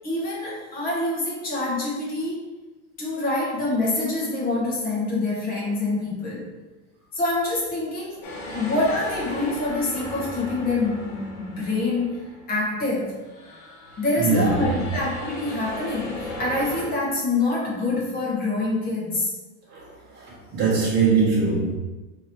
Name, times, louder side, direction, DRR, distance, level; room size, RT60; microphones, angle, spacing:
voice 1, 0.0-2.4 3.0-6.5 7.1-8.2 8.5-13.2 14.0-19.3, left 2 dB, 20° left, -4 dB, 0.9 m, -26 dB
sound 1, 8.2-12.8 13.2-16.9, left 1 dB, 50° left, 1.1 m, -37 dB
voice 2, 14.2-14.8 19.7-21.7, right 4 dB, 25° right, -5 dB, 1.2 m, -22 dB
3.7 x 2.9 x 4.4 m, 1.2 s
supercardioid pair, 175°, 43 cm